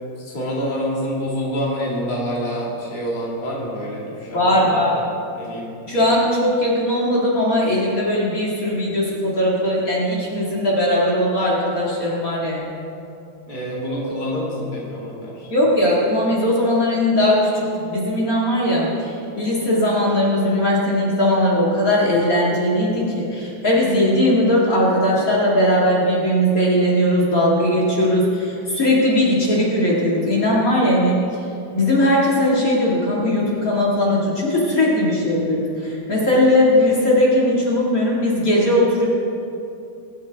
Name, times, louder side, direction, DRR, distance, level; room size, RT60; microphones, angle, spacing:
voice 1, 0.2-5.0 5.3-5.7 13.5-15.5, equal, 25° left, -5 dB, 2.2 m, -27 dB
voice 2, 4.3-5.0 5.9-12.7 15.5-31.2 31.7-39.1, left 1 dB, 45° left, -5 dB, 2.4 m, -19 dB
23.5 x 8.0 x 3.4 m, 2.6 s
omnidirectional pair, 2.1 m